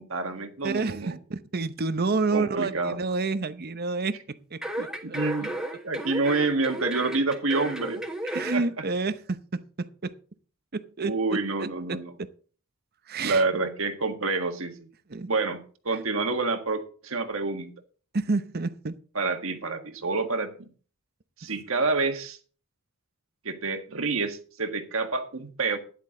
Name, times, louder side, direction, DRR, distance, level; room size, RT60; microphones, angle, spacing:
voice 1, 0.0-1.2 2.3-3.0 5.0-5.5 5.8-8.0 8.5-8.6 11.0-12.1 13.2-14.9 15.3-17.7 19.1-20.7 21.4-22.4 23.4-25.8, right 3 dB, 65° right, 6 dB, 1.7 m, -28 dB
voice 2, 0.6-5.2 8.3-10.2 10.7-12.0 13.1-13.4 15.1-15.3 18.1-18.9, right 3 dB, 45° right, 13 dB, 0.8 m, -29 dB
sound 1, 4.6-8.6 9.0-9.1, right 1 dB, 5° right, 1.5 m, -34 dB
12.5 x 10.5 x 3.8 m, 0.42 s
head